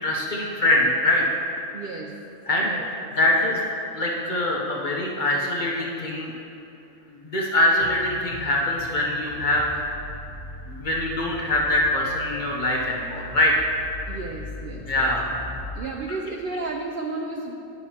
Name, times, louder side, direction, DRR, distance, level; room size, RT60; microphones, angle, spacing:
voice 1, 0.0-1.4 2.5-2.7 3.1-3.6 3.9-6.3 7.2-9.7 10.7-13.6 14.9-15.3 16.1-16.2, left 1 dB, 45° left, -2 dB, 0.7 m, -23 dB
voice 2, 1.7-2.1 2.6-3.1 14.1-15.1 15.7-17.5, right 3 dB, 80° right, 1 dB, 0.5 m, -33 dB
sound 1, 7.8-15.8, left 2 dB, 15° left, 1.3 m, -39 dB
10.5 x 5.8 x 2.8 m, 2.8 s
omnidirectional pair, 1.5 m